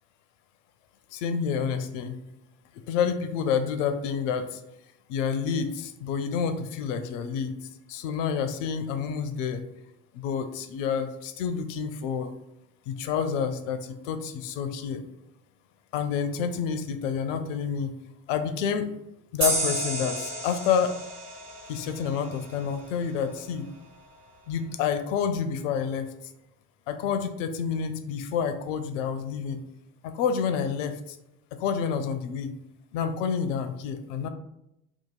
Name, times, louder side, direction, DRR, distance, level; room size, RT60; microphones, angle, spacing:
voice 1, 1.1-2.2 2.9-4.6 5.1-7.5 7.9-9.6 10.1-12.3 12.9-15.0 15.9-17.9 18.3-18.9 19.3-20.9 21.7-23.7 24.5-26.1 26.9-29.6 30.0-31.2 31.6-32.5 32.9-34.3, left 7 dB, 55° left, 9 dB, 0.5 m, -28 dB
sound 1, 19.4-22.7, right 2 dB, 35° right, 1.3 m, -31 dB
2.8 x 2.4 x 3.7 m, 0.84 s
figure-of-eight pair, 65°, 47 cm